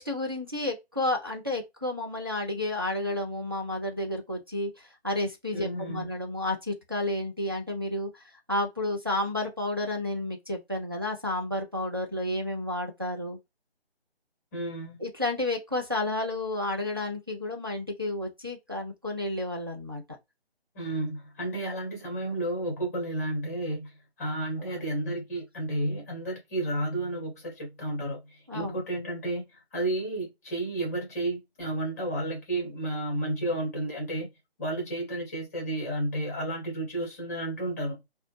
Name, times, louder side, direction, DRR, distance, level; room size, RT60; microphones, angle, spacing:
voice 1, 0.0-13.4 15.0-20.0 28.5-28.8, left 1 dB, 25° right, 0.4 m, -31 dB
voice 2, 5.5-6.1 14.5-15.0 20.7-23.9 24.2-34.3 34.6-38.0, right 1 dB, 15° left, 0.8 m, -32 dB
2.6 x 2.0 x 3.1 m
figure-of-eight pair, 160°, 32 cm